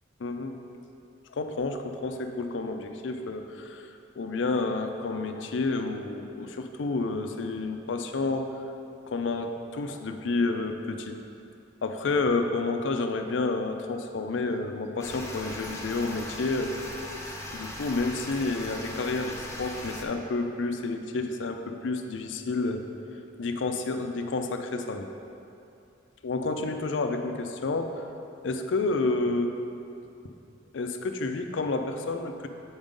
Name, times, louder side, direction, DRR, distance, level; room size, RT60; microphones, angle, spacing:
voice 1, 0.2-0.6 1.3-8.6 9.1-11.2 11.8-16.7 17.5-22.8 23.4-25.1 26.2-28.0 28.4-29.5 30.7-32.5, left 3 dB, 75° left, 6 dB, 0.5 m, -30 dB
sound 1, 15.0-20.0, left 1 dB, 15° left, 0.7 m, -39 dB
7.9 x 5.2 x 3.7 m, 2.7 s
head